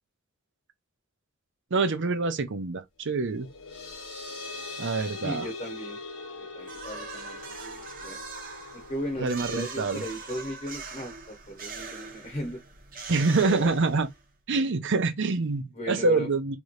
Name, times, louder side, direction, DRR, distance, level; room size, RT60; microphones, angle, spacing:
voice 1, 1.7-3.5 4.8-5.5 9.2-10.0 13.1-14.1 14.5-16.6, right 3 dB, 60° right, 0.7 m, -26 dB
sound 1, 3.1-10.3, left 3 dB, 65° left, 1.2 m, -42 dB
voice 2, 5.2-6.0 6.5-8.2 8.7-12.6 13.4-13.7 15.7-16.3, equal, 30° left, 1.0 m, -36 dB
sound 2, 6.6-14.3, right 4 dB, 40° right, 1.1 m, -42 dB
3.2 x 3.1 x 2.5 m
head